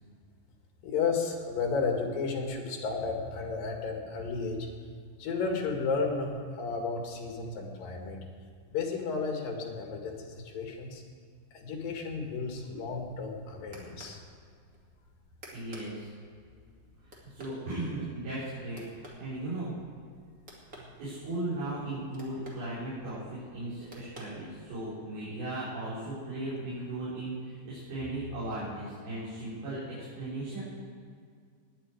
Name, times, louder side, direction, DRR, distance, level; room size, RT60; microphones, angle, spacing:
voice 1, 0.8-4.7 5.2-8.2 8.7-11.0 11.5-14.2, left 4 dB, 65° left, 2 dB, 3.4 m, -33 dB
sound 1, 13.0-25.0, equal, 30° right, 2.1 m, -54 dB
voice 2, 15.5-16.1 17.0-19.7 20.6-29.8 30.1-30.6, right 2 dB, 85° right, -11 dB, 6.3 m, -37 dB
18.5 x 10.0 x 4.7 m, 2.1 s
omnidirectional pair, 4.4 m